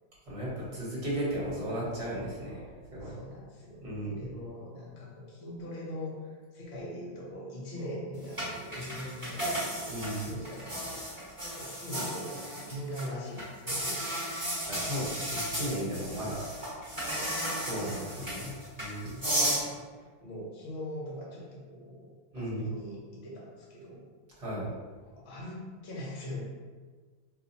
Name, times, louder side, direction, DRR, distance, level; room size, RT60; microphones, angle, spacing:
voice 1, 0.3-2.6 2.9-3.2 3.8-4.3 9.9-10.3 14.7-16.4 17.6-19.2 22.3-22.8 24.4-24.7, right 1 dB, 40° right, -7 dB, 1.3 m, -35 dB
voice 2, 3.0-14.2 16.9-17.9 19.4-22.1 22.3-24.1 25.0-26.4, left 1 dB, 45° left, -5 dB, 0.9 m, -42 dB
sound 1, 8.3-13.0 13.4-19.6, right 1 dB, 15° right, 1.1 m, -34 dB
2.8 x 2.2 x 3.9 m, 1.5 s
omnidirectional pair, 1.8 m